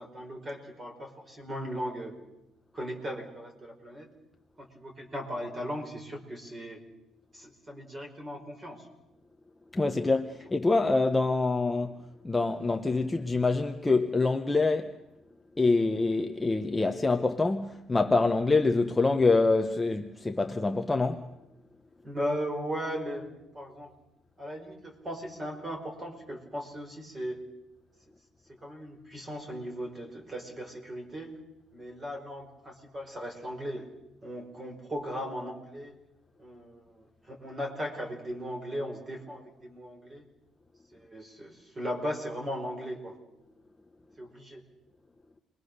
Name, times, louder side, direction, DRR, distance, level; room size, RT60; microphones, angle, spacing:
voice 1, 0.0-2.1 2.7-4.1 4.6-6.8 7.3-8.9 22.0-23.3 23.5-23.9 24.4-27.4 28.6-31.3 31.7-33.9 34.2-36.0 36.4-40.2 40.9-43.1 44.2-44.6, equal, 20° right, 5.0 m, -37 dB
voice 2, 9.7-15.0 15.6-21.3, left 3 dB, 10° left, 0.8 m, -26 dB
28.5 x 22.5 x 6.6 m
cardioid pair, 175°, 0 cm